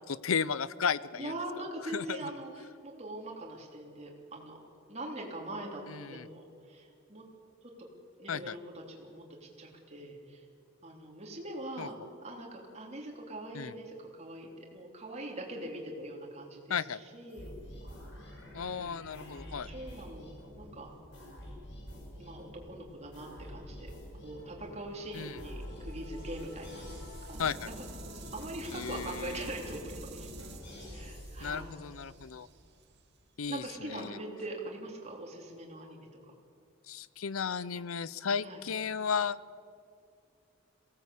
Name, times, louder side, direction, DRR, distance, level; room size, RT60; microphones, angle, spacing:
voice 1, 0.2-1.3 1.9-2.3 5.9-6.3 8.3-8.6 11.8-11.9 13.5-13.7 16.7-17.0 18.5-19.7 25.1-25.4 27.4-27.7 28.7-29.5 31.4-32.5 33.4-34.2 36.9-39.4, left 6 dB, 80° left, 18 dB, 0.6 m, -34 dB
voice 2, 1.2-4.6 4.9-7.2 7.6-7.7 8.2-10.5 10.8-11.9 12.2-17.5 18.5-20.3 20.6-20.9 22.2-23.9 24.2-27.7 28.1-30.3 30.9-31.8 33.5-36.3 38.4-38.6, right 1 dB, 30° right, 0 dB, 3.5 m, -43 dB
sound 1, 17.3-31.6, left 1 dB, 55° left, 6.4 m, -46 dB
sound 2, 25.6-33.7, right 3 dB, 55° right, 2.2 m, -51 dB
23.0 x 17.5 x 8.5 m, 2.4 s
head